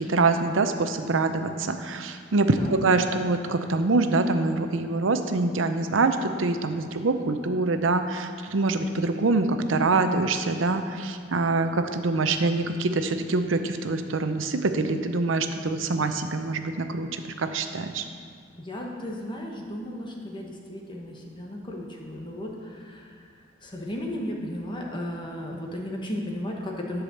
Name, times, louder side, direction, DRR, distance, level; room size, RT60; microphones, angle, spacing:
voice 1, 0.0-18.0, right 3 dB, 80° right, 8 dB, 0.7 m, -25 dB
voice 2, 18.6-23.1 23.6-27.0, left 1 dB, 25° left, -1 dB, 1.2 m, -35 dB
11.0 x 4.9 x 6.4 m, 2.1 s
head